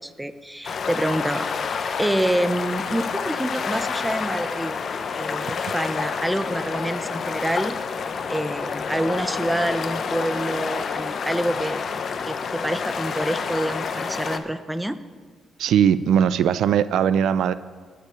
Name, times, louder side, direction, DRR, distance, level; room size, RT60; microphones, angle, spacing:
voice 1, 0.0-1.5 2.0-4.8 5.1-7.8 8.3-11.8 12.2-15.0, right 1 dB, 5° right, 11 dB, 0.7 m, -27 dB
sound 1, 0.6-14.4, left 5 dB, 55° left, 0.8 m, -28 dB
voice 2, 15.6-17.5, right 8 dB, 85° right, 15 dB, 0.4 m, -19 dB
19.0 x 6.8 x 4.9 m, 1.5 s
cardioid pair, 90°, 0 cm